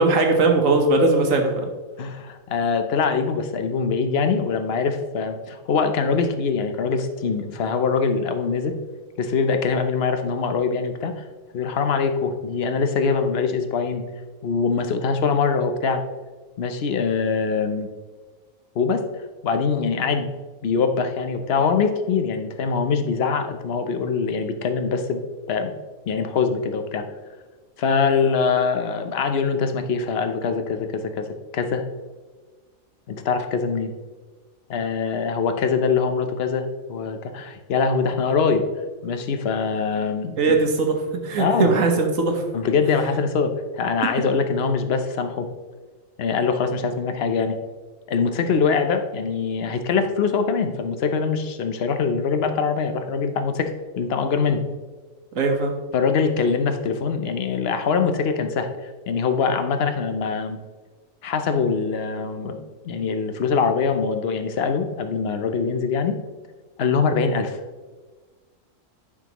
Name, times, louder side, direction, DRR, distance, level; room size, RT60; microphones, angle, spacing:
voice 1, 0.0-1.5 40.4-42.4 55.3-55.7, right 3 dB, 75° right, 3 dB, 1.5 m, -19 dB
voice 2, 2.0-8.8 9.2-11.2 11.5-14.0 14.4-16.0 16.6-17.9 18.7-19.0 19.4-20.3 20.6-25.2 25.5-25.7 26.1-27.0 27.8-31.3 31.5-31.8 33.1-33.9 34.7-38.6 39.0-40.6 41.4-41.8 42.5-45.5 46.2-47.6 48.1-54.6 55.9-58.7 59.1-60.6 61.2-66.2 66.8-67.6, left 5 dB, 55° left, 7 dB, 0.9 m, -23 dB
10.0 x 6.0 x 3.0 m, 1.3 s
omnidirectional pair, 1.4 m